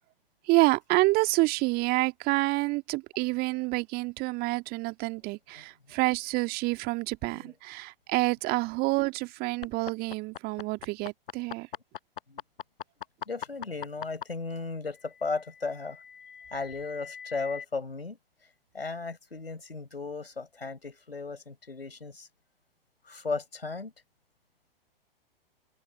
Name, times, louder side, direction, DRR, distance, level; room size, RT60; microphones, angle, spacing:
voice 1, 0.5-11.7, right 23 dB, 30° right, 1.8 m, -28 dB
voice 2, 5.2-5.7 7.3-7.5 12.3-12.4 13.3-16.0 16.5-18.2 18.7-22.3 23.0-23.9, left 4 dB, 80° left, 5.2 m, -36 dB
sound 1, 9.6-14.2 15.4-17.6, left 9 dB, 60° left, 5.9 m, -40 dB
figure-of-eight pair, 105°, 29 cm